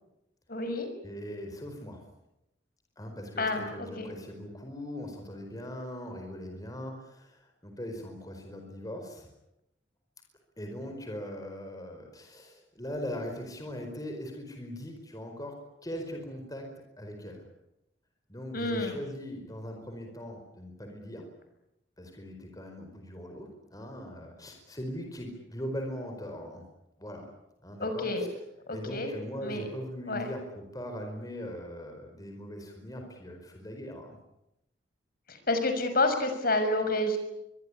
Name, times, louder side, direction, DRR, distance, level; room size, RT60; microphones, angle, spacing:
voice 1, 0.5-0.9 3.4-4.1 18.5-19.0 27.8-28.3 28.7-29.1 29.4-29.7 30.1-30.3 35.3-37.2, left 2 dB, 50° left, 7 dB, 6.0 m, -29 dB
voice 2, 1.0-2.0 3.0-9.3 10.6-15.5 15.8-16.7 17.0-17.4 18.3-21.3 22.0-26.6 27.0-27.3 27.6-28.3 28.7-34.2, equal, 20° left, 3 dB, 4.7 m, -40 dB
24.5 x 22.0 x 9.8 m, 0.88 s
head